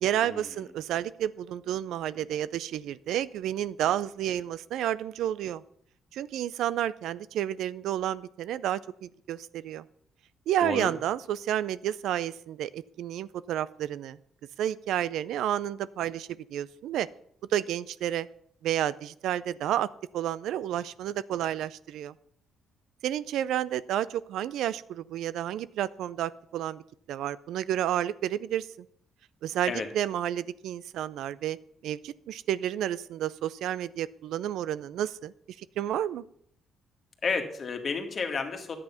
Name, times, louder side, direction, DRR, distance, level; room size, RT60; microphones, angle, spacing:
voice 1, 0.0-5.6 6.1-9.8 10.5-14.2 14.6-17.1 17.5-18.3 18.6-22.1 23.0-26.8 27.1-28.7 29.4-31.6 31.8-35.3 35.6-36.2, right 11 dB, 80° right, 18 dB, 0.4 m, -30 dB
voice 2, 10.6-10.9 29.7-29.9 37.2-38.8, left 4 dB, 45° left, 5 dB, 1.8 m, -31 dB
10.5 x 8.6 x 5.6 m, 0.67 s
cardioid pair, 75°, 0 cm